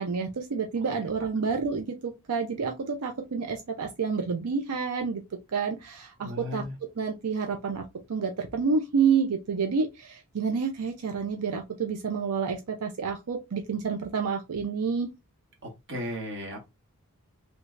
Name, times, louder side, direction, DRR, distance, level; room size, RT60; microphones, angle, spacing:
voice 1, 0.0-5.2 5.5-6.6 7.0-7.8 8.1-15.1, right 5 dB, 90° right, 0.5 m, -29 dB
voice 2, 6.2-6.7 15.6-16.7, left 1 dB, 55° right, 1.4 m, -36 dB
3.2 x 3.2 x 2.4 m
head